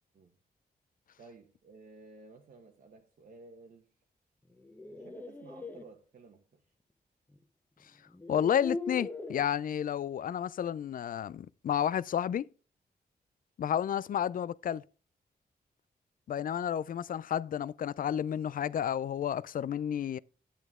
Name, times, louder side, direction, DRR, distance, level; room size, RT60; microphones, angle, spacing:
voice 1, 1.2-3.9 4.9-6.6, right 3 dB, 60° right, 1.2 m, -54 dB
sound 1, 4.5-5.8 7.3-7.4 8.1-9.5, left 2 dB, 10° left, 1.0 m, -40 dB
voice 2, 8.3-12.4 13.6-14.8 16.3-20.2, left 9 dB, 60° left, 0.4 m, -31 dB
10.0 x 9.1 x 3.6 m
wide cardioid pair, 165°, 16 cm